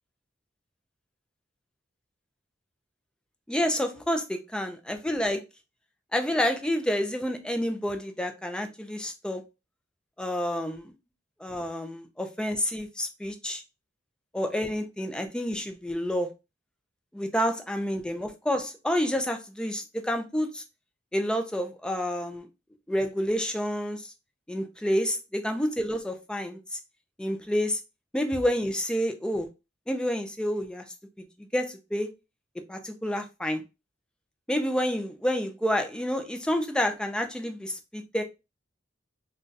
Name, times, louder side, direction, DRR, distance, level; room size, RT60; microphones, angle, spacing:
voice 1, 3.5-5.4 6.1-9.4 10.2-10.9 11.4-13.6 14.3-16.3 17.1-20.6 21.1-22.5 22.9-24.0 24.5-26.6 27.2-27.8 28.1-29.5 29.9-30.8 31.5-32.1 32.7-33.6 34.5-38.2, equal, 5° left, 5 dB, 0.4 m, -29 dB
2.5 x 2.2 x 3.8 m, 0.27 s
head